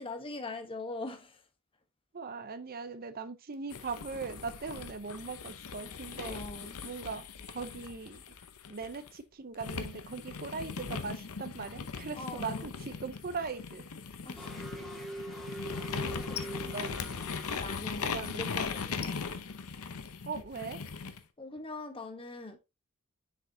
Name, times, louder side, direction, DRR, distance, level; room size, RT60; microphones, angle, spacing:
voice 1, 0.0-1.4 6.2-6.8 12.1-12.7 14.2-14.7 16.0-17.1 17.5-19.2 21.4-22.6, left 2 dB, 25° left, 1.1 m, -42 dB
voice 2, 2.1-6.4 6.8-8.2 8.7-13.8 16.6-17.1 18.1-18.5 20.3-20.8, right 4 dB, 45° right, 0.6 m, -40 dB
sound 1, 3.7-9.1 9.6-21.2, left 5 dB, 85° left, 0.8 m, -39 dB
sound 2, 14.4-17.6, right 1 dB, ahead, 1.9 m, -43 dB
6.9 x 4.9 x 2.7 m
head